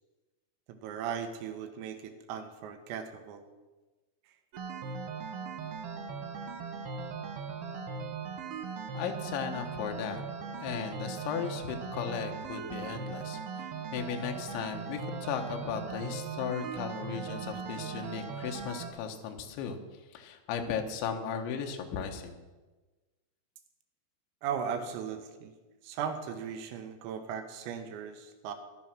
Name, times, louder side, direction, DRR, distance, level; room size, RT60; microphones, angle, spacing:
voice 1, 0.7-3.4 24.4-25.5 25.8-28.5, right 7 dB, 90° right, 7 dB, 4.0 m, -37 dB
sound 1, 4.5-18.9, right 5 dB, 70° right, 2.5 m, -39 dB
voice 2, 8.9-10.2 10.6-19.8 20.1-22.4, left 7 dB, 70° left, 4 dB, 3.4 m, -36 dB
15.5 x 11.0 x 6.0 m, 1.2 s
omnidirectional pair, 5.9 m